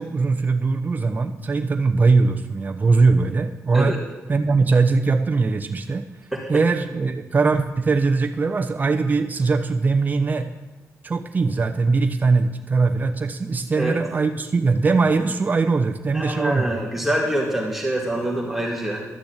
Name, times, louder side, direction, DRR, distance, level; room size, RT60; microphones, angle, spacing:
voice 1, 0.0-4.0 4.3-6.0 6.5-10.5 11.0-16.7, right 4 dB, 30° right, 5 dB, 0.9 m, -21 dB
voice 2, 16.1-19.1, right 1 dB, 5° right, -3 dB, 2.1 m, -25 dB
12.0 x 6.9 x 8.2 m, 1.1 s
cardioid pair, 115°, 6 cm